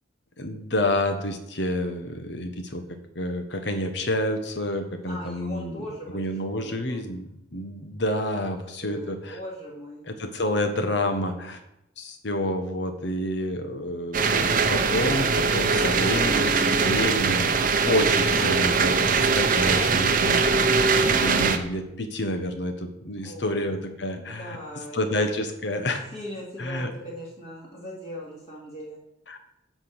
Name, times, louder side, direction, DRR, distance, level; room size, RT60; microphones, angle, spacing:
voice 1, 0.4-2.8 3.1-5.8 6.1-9.4 10.1-11.6 12.0-17.6 17.8-24.6 24.9-26.0 26.6-26.9 29.3-29.4, left 1 dB, 60° left, 7 dB, 1.3 m, -29 dB
voice 2, 5.1-7.1 8.4-10.1 23.2-23.8 24.1-25.2 26.1-29.0, equal, 35° left, -5 dB, 2.6 m, -40 dB
sound 1, 14.1-21.6, right 4 dB, 45° right, 0.8 m, -22 dB
9.4 x 5.2 x 8.0 m, 0.83 s
head